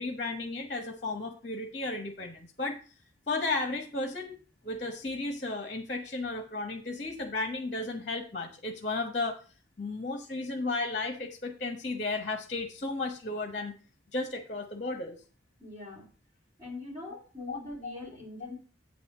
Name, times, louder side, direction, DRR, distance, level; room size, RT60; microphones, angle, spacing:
voice 1, 0.0-2.8 3.3-4.3 4.6-9.4 9.8-13.7 14.1-15.2 17.5-17.9, left 3 dB, 35° left, 5 dB, 1.1 m, -34 dB
voice 2, 15.6-16.1 16.6-18.6, left 2 dB, 25° right, -7 dB, 3.3 m, -42 dB
8.6 x 4.2 x 7.2 m, 0.37 s
head